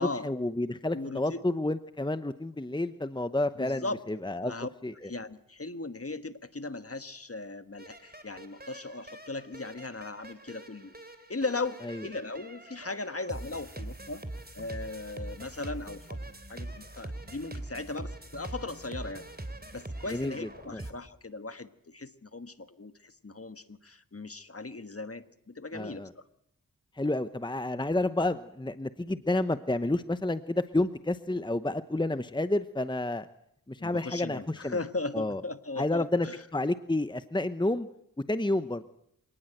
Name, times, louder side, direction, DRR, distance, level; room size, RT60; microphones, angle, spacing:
voice 1, 0.2-4.5 4.8-5.1 11.9-12.0 20.1-20.8 25.7-26.1 27.0-33.3 33.7-34.8 35.1-35.4 35.8-36.3 36.5-37.9 38.3-38.8, left 2 dB, 15° left, 12 dB, 0.9 m, -30 dB
voice 2, 0.9-1.4 3.6-4.0 4.4-4.7 5.0-10.9 11.3-14.2 14.5-16.2 16.5-19.3 19.7-26.2 33.8-36.4, left 3 dB, 45° left, 10 dB, 1.5 m, -38 dB
sound 1, 7.8-20.9, right 1 dB, 30° right, 3.2 m, -43 dB
26.0 x 19.0 x 7.9 m, 0.74 s
wide cardioid pair, 50°, 34 cm